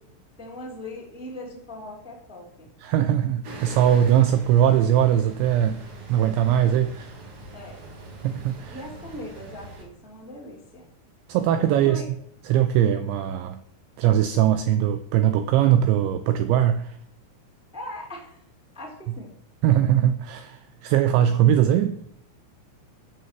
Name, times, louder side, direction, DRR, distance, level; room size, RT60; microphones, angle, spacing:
voice 1, 0.4-2.7 7.5-7.8 8.7-10.9 11.3-12.1 17.7-18.4 18.7-19.3, left 1 dB, ahead, 2.5 m, -40 dB
voice 2, 2.8-5.8 6.1-7.1 8.2-8.8 11.3-12.0 12.4-13.6 14.0-17.0 19.6-22.0, right 10 dB, 85° right, 2.6 m, -21 dB
sound 1, 3.4-9.8, right 2 dB, 50° right, 1.8 m, -42 dB
13.0 x 6.6 x 7.6 m
omnidirectional pair, 6.0 m